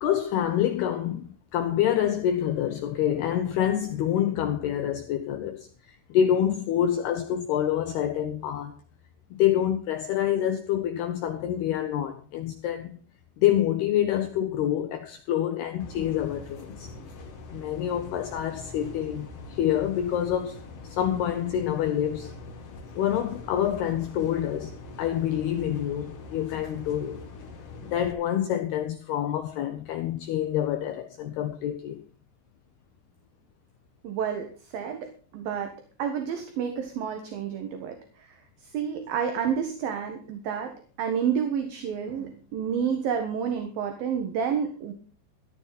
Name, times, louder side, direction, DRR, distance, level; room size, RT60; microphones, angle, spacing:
voice 1, 0.0-8.8 9.3-13.0 13.4-16.9 17.5-22.3 23.0-27.3 27.8-32.0, left 10 dB, 75° left, 2.5 m, -27 dB
sound 1, 15.8-28.1, left 3 dB, 45° left, 2.0 m, -43 dB
voice 2, 34.0-35.7 36.0-40.7 41.0-44.9, right 7 dB, 60° right, 2.8 m, -30 dB
14.5 x 13.0 x 4.2 m
omnidirectional pair, 5.7 m